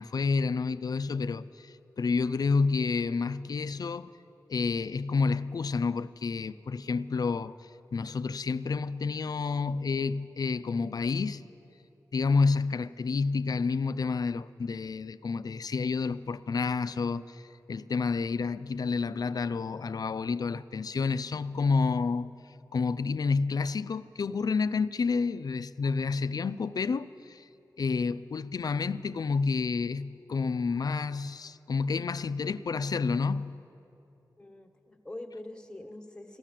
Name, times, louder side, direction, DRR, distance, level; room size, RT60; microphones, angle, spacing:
voice 1, 0.0-4.1 4.5-7.6 7.9-11.4 12.1-22.3 22.7-27.5 27.8-33.6, left 4 dB, 60° left, 0.4 m, -29 dB
voice 2, 34.4-36.4, left 1 dB, 10° left, 1.3 m, -44 dB
15.5 x 11.5 x 7.5 m
cardioid pair, 60°, 7 cm